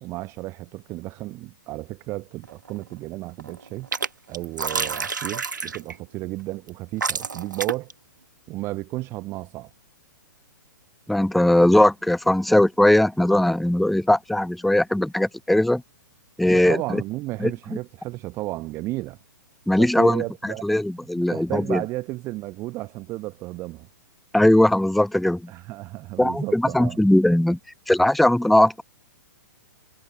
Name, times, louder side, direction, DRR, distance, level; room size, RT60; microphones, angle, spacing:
voice 1, 0.0-3.9 4.3-7.9 8.5-9.7 16.5-19.2 19.8-20.8 21.2-23.9 25.5-27.0, right 19 dB, 25° right, 1.2 m, -33 dB
sound 1, 2.4-2.9 3.2-4.1 4.3-6.0 6.7-6.8 7.0-7.9, right 5 dB, 70° right, 1.7 m, -29 dB
voice 2, 11.1-15.8 16.4-17.0 17.4-17.5 19.7-21.8 24.3-25.4 26.2-27.6 27.9-28.8, left 1 dB, ahead, 0.4 m, -19 dB
figure-of-eight pair, 115°, 10 cm